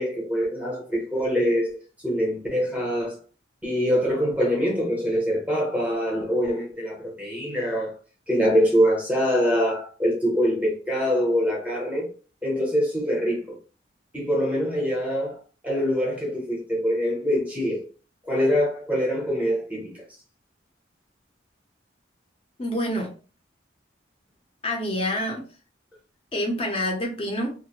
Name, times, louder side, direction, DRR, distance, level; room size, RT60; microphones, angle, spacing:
voice 1, 0.0-1.7 2.0-3.2 3.6-8.0 8.3-12.1 12.4-13.6 14.1-15.4 15.6-17.8 18.3-19.9, equal, 5° right, 0.7 m, -24 dB
voice 2, 22.6-23.1 24.6-25.4 26.3-27.5, left 1 dB, 30° left, 0.6 m, -27 dB
2.4 x 2.1 x 2.9 m
head